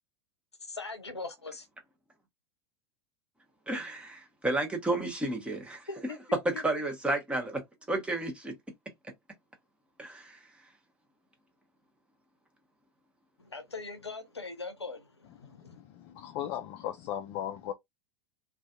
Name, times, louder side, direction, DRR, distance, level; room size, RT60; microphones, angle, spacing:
voice 1, 0.6-1.7 5.9-6.6 13.4-15.8, left 3 dB, 85° left, 0.6 m, -41 dB
voice 2, 3.7-5.9 6.4-7.6 7.9-8.5 10.0-10.4, right 2 dB, 10° right, 0.8 m, -32 dB
voice 3, 15.4-17.7, left 11 dB, 35° left, 0.4 m, -37 dB
2.4 x 2.3 x 2.6 m
figure-of-eight pair, 85°, 14 cm